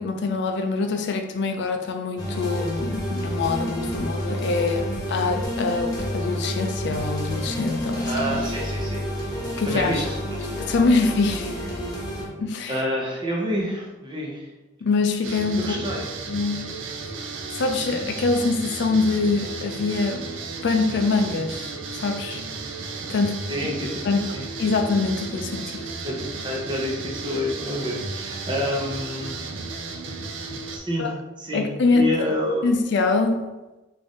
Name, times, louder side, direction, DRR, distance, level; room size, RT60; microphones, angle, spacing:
voice 1, 0.0-8.4 9.6-10.1 10.6-11.5 12.4-12.8 14.8-15.7 16.3-16.7 17.5-20.3 20.6-22.4 23.1-23.4 24.0-24.3 24.6-25.9 31.0-31.1 31.5-32.3 32.6-33.5, left 3 dB, 60° left, 0.4 m, -24 dB
sound 1, 2.2-12.3, equal, 20° left, 1.0 m, -29 dB
voice 2, 8.0-9.1 9.7-10.4 12.7-14.5 15.6-16.1 23.5-24.4 26.0-29.4 30.7-31.1 31.4-31.7 31.9-32.7, equal, 25° right, 0.7 m, -28 dB
sound 2, 15.2-30.8, right 4 dB, 70° right, 0.4 m, -34 dB
3.6 x 2.6 x 3.5 m
head